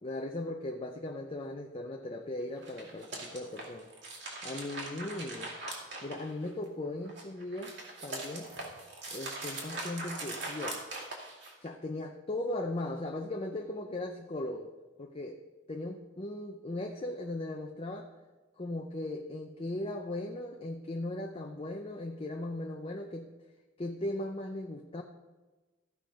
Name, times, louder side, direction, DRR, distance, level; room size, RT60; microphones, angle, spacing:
voice 1, 0.0-3.9 4.4-5.5 6.0-8.5 9.1-11.0 11.6-14.7 15.0-15.4 15.7-18.1 18.6-23.3 23.8-25.0, left 1 dB, 30° left, 3 dB, 0.6 m, -38 dB
sound 1, 2.5-6.7 7.0-11.7, right 2 dB, 60° right, 2.5 m, -41 dB
14.5 x 5.7 x 5.1 m, 1.2 s
head